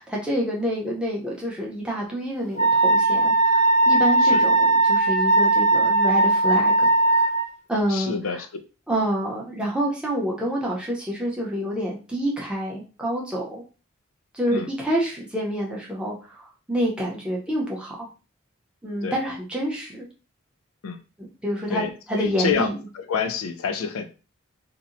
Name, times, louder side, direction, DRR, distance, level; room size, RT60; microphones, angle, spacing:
voice 1, 0.0-6.9 7.7-8.4 8.9-13.6 14.3-18.1 18.8-20.1 21.4-22.8, equal, 5° right, -3 dB, 0.6 m, -27 dB
Wind instrument woodwind instrument, 2.6-7.5, right 2 dB, 35° left, 0.6 m, -18 dB
voice 2, 7.9-8.5 14.5-14.7 19.0-19.2 20.8-21.0 21.7-22.7 22.9-24.1, left 6 dB, 90° left, 8 dB, 0.4 m, -27 dB
2.8 x 2.0 x 2.5 m, 0.33 s
head